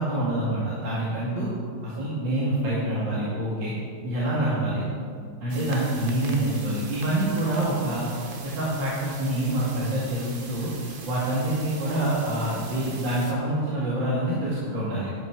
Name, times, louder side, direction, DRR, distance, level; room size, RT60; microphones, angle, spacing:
voice 1, 0.0-1.5 1.8-3.7 4.0-4.8 5.4-8.1 8.4-10.7 11.0-15.1, right 1 dB, 60° right, -8 dB, 3.0 m, -26 dB
sound 1, 5.5-13.3, right 3 dB, 35° right, 0.9 m, -42 dB
13.5 x 10.5 x 4.7 m, 2.2 s
omnidirectional pair, 2.3 m